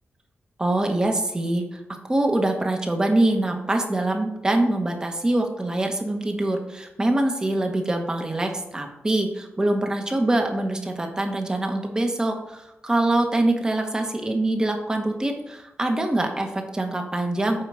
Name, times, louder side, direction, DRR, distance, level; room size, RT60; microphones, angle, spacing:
voice 1, 0.6-1.8 2.1-17.6, right 1 dB, 15° right, 3 dB, 1.1 m, -24 dB
8.9 x 4.6 x 6.2 m, 0.98 s
wide cardioid pair, 180°, 4 cm